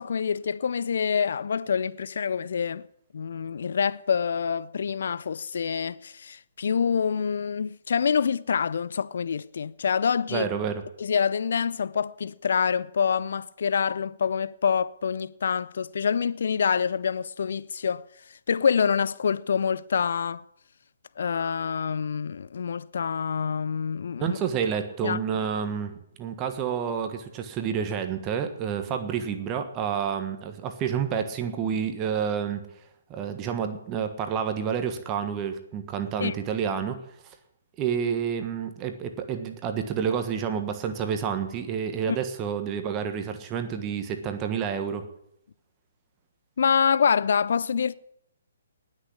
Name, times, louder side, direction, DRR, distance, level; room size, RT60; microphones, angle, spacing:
voice 1, 0.0-2.8 3.1-10.5 11.0-20.4 21.2-24.4 25.0-25.2 36.2-36.3 42.1-42.2 46.6-47.9, left 6 dB, 60° left, 0.4 m, -26 dB
voice 2, 10.3-10.8 24.2-32.7 33.1-37.0 37.2-37.3 37.8-45.1, right 7 dB, 25° right, 1.4 m, -29 dB
19.5 x 6.5 x 8.6 m
figure-of-eight pair, 130°, 0 cm